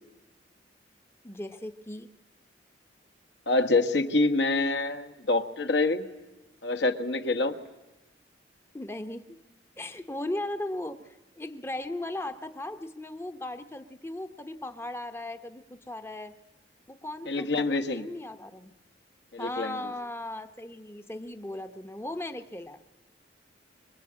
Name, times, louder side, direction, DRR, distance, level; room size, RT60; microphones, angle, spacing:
voice 1, 1.2-2.1 8.7-9.4 9.8-16.3 16.9-18.7 19.4-22.8, left 1 dB, 15° left, 8 dB, 0.9 m, -37 dB
voice 2, 3.5-6.1 6.6-7.6 17.3-18.1 19.3-19.9, left 2 dB, 75° left, 6 dB, 1.5 m, -26 dB
25.0 x 21.5 x 8.8 m, 1.0 s
head